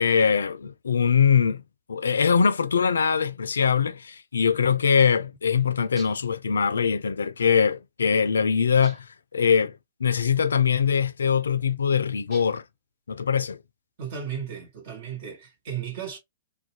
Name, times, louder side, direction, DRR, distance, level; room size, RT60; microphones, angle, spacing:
voice 1, 0.0-1.6 1.9-9.1 9.3-9.7 10.0-12.6 13.1-13.6, left 6 dB, 80° left, 0.3 m, -22 dB
sound 1, 6.0-6.4 8.8-9.3 12.3-12.8, right 2 dB, 20° right, 0.8 m, -49 dB
voice 2, 14.0-16.2, right 8 dB, 55° right, 1.1 m, -35 dB
2.4 x 2.1 x 2.8 m
hypercardioid pair, 125°, 0 cm